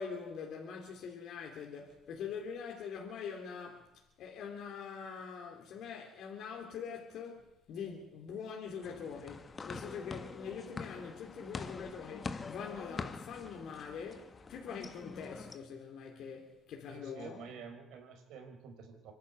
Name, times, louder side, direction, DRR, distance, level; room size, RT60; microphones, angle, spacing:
voice 1, 0.0-3.9 4.2-17.5, left 6 dB, 65° left, 3.1 m, -44 dB
sound 1, 8.8-15.6, left 4 dB, 35° left, 1.4 m, -45 dB
voice 2, 16.9-19.1, right 6 dB, 75° right, 4.8 m, -49 dB
25.5 x 11.5 x 9.4 m
supercardioid pair, 80°, 0 cm